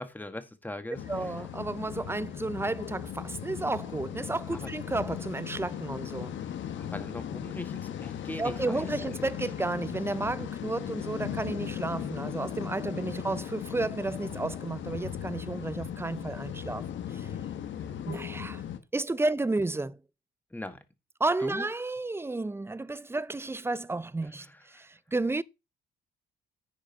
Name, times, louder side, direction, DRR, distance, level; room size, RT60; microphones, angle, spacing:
voice 1, 0.0-1.3 4.5-4.7 6.8-9.1 12.9-13.3 20.5-20.8 21.4-21.6 24.7-24.8, left 1 dB, 10° left, 1.6 m, -40 dB
sound 1, 0.9-18.8, left 9 dB, 70° left, 1.3 m, -37 dB
voice 2, 1.1-6.4 8.4-17.3 18.1-18.6 18.9-20.0 21.2-25.4, right 2 dB, 10° right, 0.5 m, -32 dB
9.9 x 4.9 x 5.4 m
cardioid pair, 90°, 20 cm